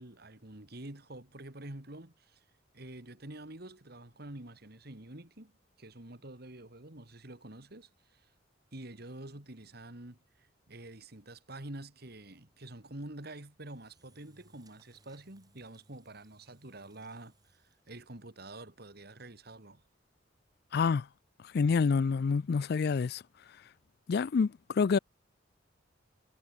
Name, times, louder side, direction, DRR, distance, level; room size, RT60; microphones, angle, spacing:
voice 1, 0.0-2.4 2.7-5.5 5.8-8.3 8.7-19.8, right 1 dB, 55° right, 2.8 m, -47 dB
Engine / Drill, 13.7-18.2, right 2 dB, 20° right, 2.8 m, -66 dB
voice 2, 20.7-21.1 21.5-23.2 24.1-25.0, left 5 dB, 55° left, 0.4 m, -27 dB
head